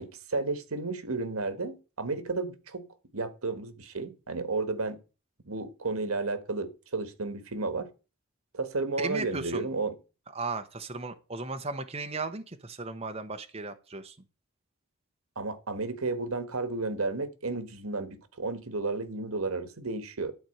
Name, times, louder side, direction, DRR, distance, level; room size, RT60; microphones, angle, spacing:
voice 1, 0.0-2.9 3.1-5.0 5.5-7.9 8.5-9.9 15.3-20.3, right 3 dB, 85° right, 1.4 m, -32 dB
voice 2, 9.0-9.7 10.3-14.2, right 3 dB, 30° right, 0.9 m, -36 dB
12.0 x 4.4 x 7.8 m
head